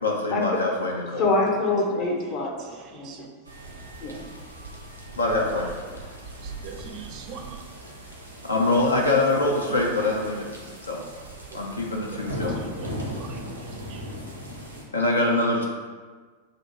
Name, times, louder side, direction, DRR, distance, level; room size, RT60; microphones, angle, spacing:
voice 1, 0.0-1.3 5.2-5.7 7.1-7.2 8.4-10.5 10.9-11.0 11.5-12.6 14.9-15.7, left 2 dB, 80° left, -1 dB, 0.5 m, -24 dB
voice 2, 1.2-2.5 2.9-3.3 4.0-4.2, left 2 dB, 40° left, -1 dB, 0.7 m, -25 dB
voice 3, 2.6-3.3 6.4-7.6 9.0-9.1 12.3-14.1, right 6 dB, 35° right, 3 dB, 0.5 m, -43 dB
sound 1, 3.4-14.8, equal, 90° right, 0.6 m, -38 dB
3.5 x 2.5 x 4.1 m, 1.5 s
figure-of-eight pair, 90°, 0 cm